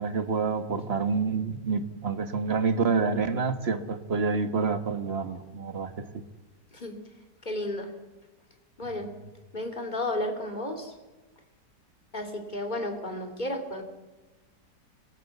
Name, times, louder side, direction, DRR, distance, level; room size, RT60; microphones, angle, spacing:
voice 1, 0.0-6.2 9.0-9.3, right 4 dB, 40° right, 9 dB, 1.5 m, -28 dB
voice 2, 7.4-7.9 8.8-9.1 9.5-10.9 12.1-13.8, left 1 dB, 25° left, 4 dB, 2.9 m, -32 dB
26.5 x 17.5 x 8.3 m, 1.2 s
omnidirectional pair, 1.8 m